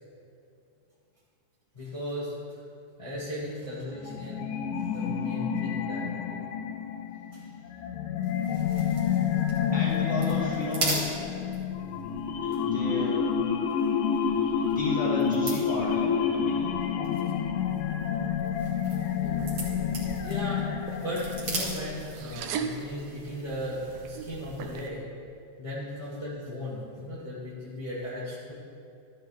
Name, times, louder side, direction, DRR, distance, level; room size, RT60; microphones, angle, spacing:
voice 1, 1.7-2.6 3.0-4.5 4.7-6.4 7.3-7.4 8.4-9.3 20.0-20.7 21.0-25.1 25.6-28.5, left 1 dB, 30° left, -8 dB, 0.6 m, -37 dB
sound 1, 4.0-22.0, left 7 dB, 90° left, 2.5 m, -29 dB
sound 2, 8.2-22.6, right 2 dB, 45° right, 2.4 m, -40 dB
voice 2, 9.7-11.1 12.4-13.3 14.2-16.8, left 1 dB, 5° right, -7 dB, 1.1 m, -34 dB
sound 3, 19.2-24.9, right 6 dB, 75° right, 2.1 m, -40 dB
13.5 x 10.0 x 3.4 m, 2.5 s
omnidirectional pair, 4.1 m